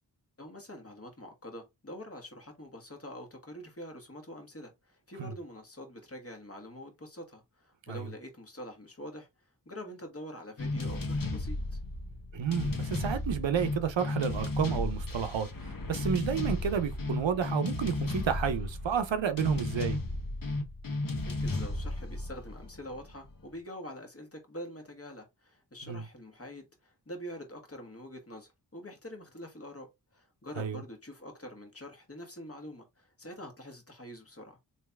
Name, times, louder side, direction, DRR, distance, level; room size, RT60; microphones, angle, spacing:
voice 1, 0.4-9.3 9.6-11.8 21.4-34.6, equal, 30° left, 1.5 m, -45 dB
sound 1, 10.6-23.3, left 2 dB, 50° left, 1.1 m, -34 dB
voice 2, 12.3-20.0 25.9-26.0 30.6-30.8, right 7 dB, 85° right, 0.7 m, -31 dB
3.2 x 2.8 x 3.4 m
cardioid pair, 45°, 44 cm